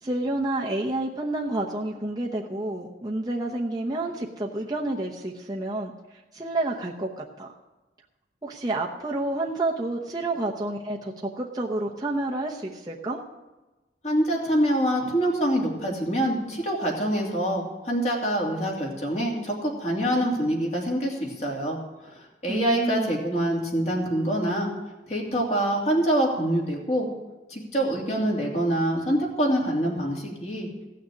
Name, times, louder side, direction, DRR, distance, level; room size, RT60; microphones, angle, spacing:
voice 1, 0.0-5.9 6.3-7.5 8.4-13.2 22.5-23.1, right 2 dB, 20° right, -2 dB, 0.9 m, -29 dB
voice 2, 14.0-24.7 25.1-27.1 27.5-30.7, right 1 dB, 40° left, -1 dB, 2.8 m, -25 dB
15.5 x 6.5 x 8.4 m, 1.1 s
head